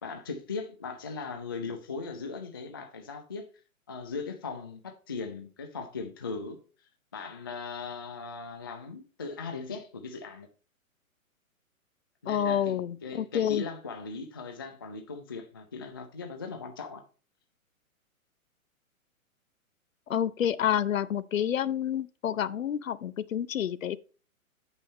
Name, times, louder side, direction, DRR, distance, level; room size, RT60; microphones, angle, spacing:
voice 1, 0.0-3.5 3.9-6.6 7.1-10.5 12.2-17.0, left 4 dB, 20° left, 0.3 m, -39 dB
voice 2, 12.3-13.6 20.1-24.0, left 9 dB, 65° left, 0.7 m, -28 dB
8.5 x 5.5 x 4.2 m
figure-of-eight pair, 120°, 43 cm